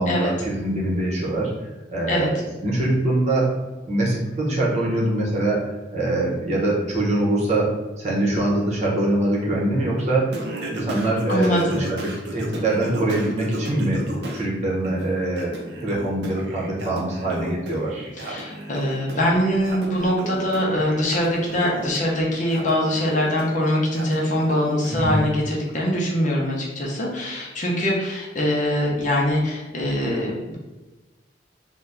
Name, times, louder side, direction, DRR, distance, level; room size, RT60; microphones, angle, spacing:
voice 1, 0.0-1.5 1.9-2.3 2.6-3.5 3.9-10.3 10.7-14.0 14.3-18.1 24.9-25.2, right 1 dB, 40° right, -4 dB, 0.9 m, -23 dB
Singing, 10.3-14.5 14.8-25.2, right 1 dB, 65° right, 0.6 m, -34 dB
voice 2, 11.3-11.8 18.2-30.6, equal, 45° left, -3 dB, 0.7 m, -23 dB
2.7 x 2.2 x 3.4 m, 1.1 s
head